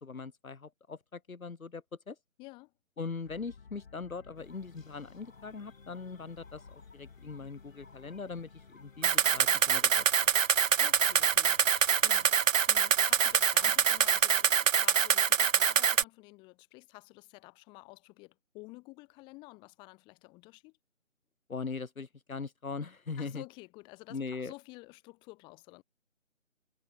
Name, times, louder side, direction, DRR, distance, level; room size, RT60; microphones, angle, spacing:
voice 1, 0.0-2.2 3.0-10.3 21.5-23.4 24.1-24.5, left 4 dB, 90° left, 1.0 m, -41 dB
voice 2, 2.4-2.7 10.8-20.8 23.2-25.8, left 24 dB, 10° left, 4.1 m, -51 dB
sound 1, 3.2-10.1, left 5 dB, 45° left, 4.3 m, -56 dB
sound 2, 4.3-14.3, left 3 dB, 70° left, 3.3 m, -58 dB
Camera, 9.0-16.0, right 8 dB, 70° right, 0.5 m, -25 dB
figure-of-eight pair, 155°, 41 cm